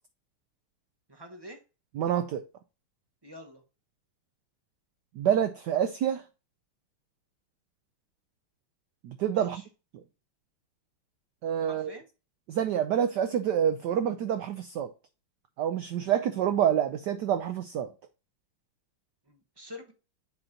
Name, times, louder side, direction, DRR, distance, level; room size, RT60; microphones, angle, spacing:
voice 1, 1.1-1.6 3.2-3.6 9.3-9.7 11.6-12.0 19.3-19.9, left 1 dB, 40° right, 0.3 m, -46 dB
voice 2, 2.0-2.4 5.2-6.2 9.0-9.6 11.4-11.9 12.5-14.9 15.6-17.9, right 9 dB, 75° right, 1.0 m, -27 dB
7.8 x 2.9 x 5.0 m
omnidirectional pair, 2.3 m